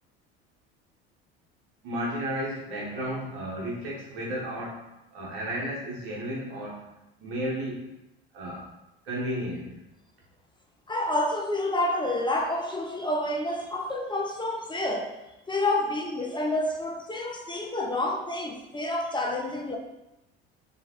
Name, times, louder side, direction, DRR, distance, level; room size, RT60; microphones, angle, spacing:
voice 1, 1.8-6.9 7.2-7.8 8.3-8.7 9.0-9.8, equal, 85° right, -3 dB, 1.4 m, -33 dB
voice 2, 10.9-15.2 15.5-19.8, left 1 dB, 15° left, 1 dB, 0.8 m, -29 dB
3.4 x 3.3 x 4.5 m, 0.94 s
hypercardioid pair, 70°, 29 cm